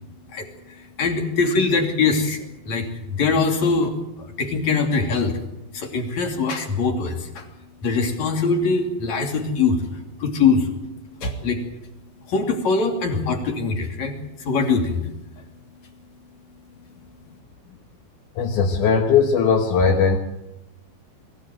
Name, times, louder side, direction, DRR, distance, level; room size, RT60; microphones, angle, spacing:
voice 1, 0.3-5.4 5.7-7.5 7.8-10.7 11.2-11.6 12.2-15.1 15.4-15.5, left 4 dB, 45° left, 4 dB, 3.6 m, -23 dB
voice 2, 18.4-20.2, left 6 dB, 60° left, 3 dB, 2.3 m, -18 dB
23.0 x 16.5 x 9.2 m, 0.94 s
omnidirectional pair, 5.1 m